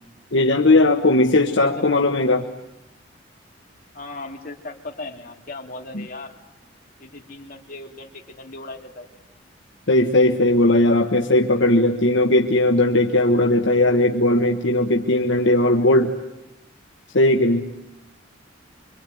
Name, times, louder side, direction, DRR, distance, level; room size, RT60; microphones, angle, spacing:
voice 1, 0.3-2.4 5.9-6.1 9.9-16.2 17.1-17.7, left 1 dB, 70° left, 3 dB, 1.4 m, -18 dB
voice 2, 1.4-2.0 3.9-6.3 7.0-9.1, left 2 dB, 45° left, 1 dB, 3.3 m, -37 dB
26.5 x 24.5 x 9.3 m, 0.87 s
head